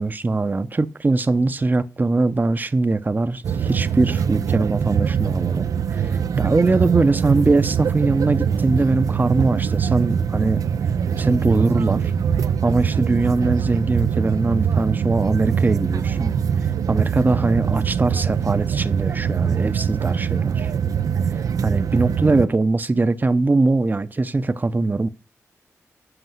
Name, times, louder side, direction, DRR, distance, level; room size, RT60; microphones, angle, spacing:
voice 1, 0.0-5.7 5.9-10.6 11.1-12.1 12.6-16.3 16.9-20.7 21.6-25.1, right 3 dB, 30° right, 0.7 m, -21 dB
sound 1, 3.4-22.5, right 7 dB, 85° right, 0.4 m, -23 dB
7.9 x 5.9 x 7.8 m
cardioid pair, 70°, 6 cm